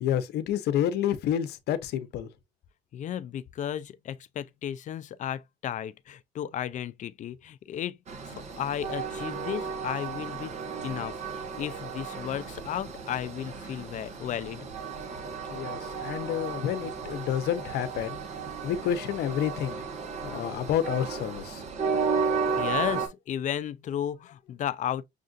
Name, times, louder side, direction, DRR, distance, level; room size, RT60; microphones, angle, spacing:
voice 1, 0.0-2.3 15.5-18.2 18.6-19.8 20.2-21.6, left 10 dB, 75° left, 0.7 m, -29 dB
voice 2, 2.9-8.0 8.3-10.6 10.8-14.7 22.5-25.0, left 10 dB, 45° left, 0.4 m, -34 dB
Train, 8.1-23.1, right 5 dB, 40° right, 1.2 m, -34 dB
6.5 x 2.5 x 2.4 m
cardioid pair, 110°, 17 cm